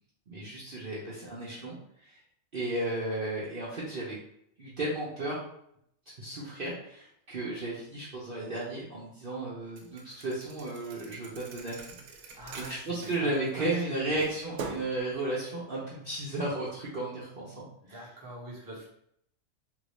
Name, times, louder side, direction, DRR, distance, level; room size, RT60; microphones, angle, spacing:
voice 1, 0.3-1.8 2.0-2.1 2.5-4.2 4.6-5.4 6.2-11.9 12.2-18.0, right 2 dB, 45° right, -7 dB, 0.8 m, -34 dB
Thump thud, 9.8-13.8 14.2-15.0, right 4 dB, 80° right, 1.0 m, -43 dB
voice 2, 12.3-14.3 17.8-18.9, right 1 dB, 15° right, -4 dB, 0.8 m, -44 dB
3.6 x 2.5 x 3.1 m, 0.71 s
omnidirectional pair, 1.5 m